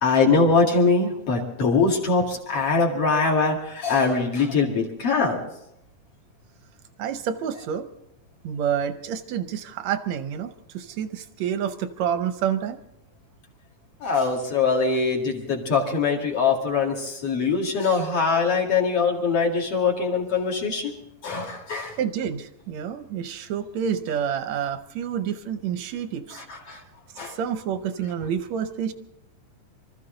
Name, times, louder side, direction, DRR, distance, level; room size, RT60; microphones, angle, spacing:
voice 1, 0.0-5.4 14.0-20.9 21.2-21.9 26.4-26.8 27.2-27.4, left 4 dB, 45° left, 0 dB, 3.0 m, -22 dB
voice 2, 7.0-7.9 8.4-12.8 22.0-26.4 26.7-26.8 27.3-28.9, right 8 dB, 75° right, 10 dB, 1.7 m, -28 dB
25.0 x 14.0 x 3.9 m, 0.78 s
omnidirectional pair, 3.9 m